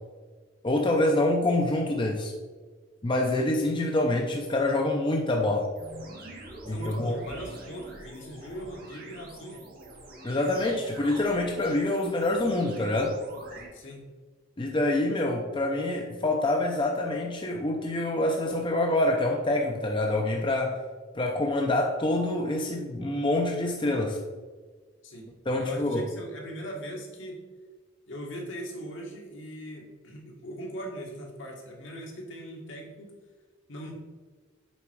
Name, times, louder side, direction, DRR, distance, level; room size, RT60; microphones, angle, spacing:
voice 1, 0.6-2.3 3.0-5.7 6.7-7.2 10.2-13.2 14.6-20.8 21.1-24.2 25.5-26.0, left 1 dB, 25° left, 1 dB, 0.6 m, -26 dB
sound 1, 5.7-13.7, right 1 dB, 50° right, 1.5 m, -45 dB
voice 2, 6.7-9.6 13.7-14.1 25.0-25.3 25.6-27.4 28.1-33.1 33.7-33.9, equal, 70° left, -1 dB, 1.7 m, -40 dB
7.1 x 4.7 x 4.6 m, 1.4 s
head